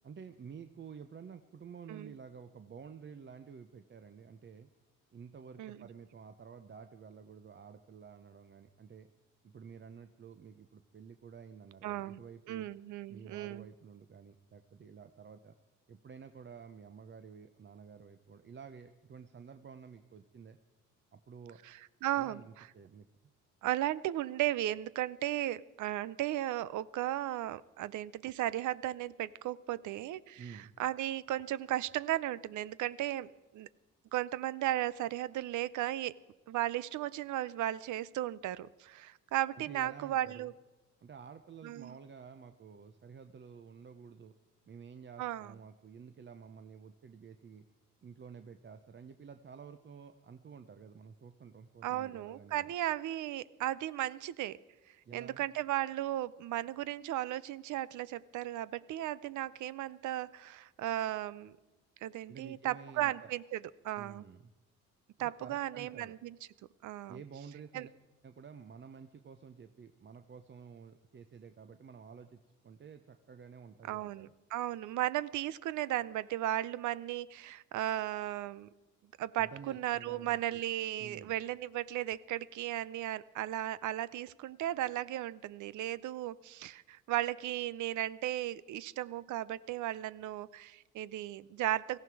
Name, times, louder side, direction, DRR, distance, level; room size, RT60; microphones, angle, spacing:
voice 1, 0.0-4.7 5.1-9.1 9.4-12.7 13.1-15.5 15.9-20.6 21.1-21.6 22.1-23.1 30.4-30.7 39.5-40.5 41.0-44.3 44.7-47.6 48.0-52.7 55.0-55.4 62.3-63.3 64.0-64.5 65.2-66.1 67.1-67.9 68.2-74.3 79.3-80.6 81.0-81.4, right 6 dB, 40° right, 9 dB, 0.8 m, -51 dB
voice 2, 11.8-12.2 12.5-13.6 22.0-22.4 23.6-33.7 34.1-36.2 36.5-40.5 41.6-41.9 45.2-45.5 51.8-54.6 54.9-61.6 62.0-63.6 63.8-64.3 65.2-66.4 66.8-67.2 67.7-67.9 73.9-78.7 79.2-92.0, right 13 dB, 80° right, 19 dB, 0.6 m, -35 dB
17.5 x 15.0 x 4.7 m, 1.1 s
cardioid pair, 90°, 30 cm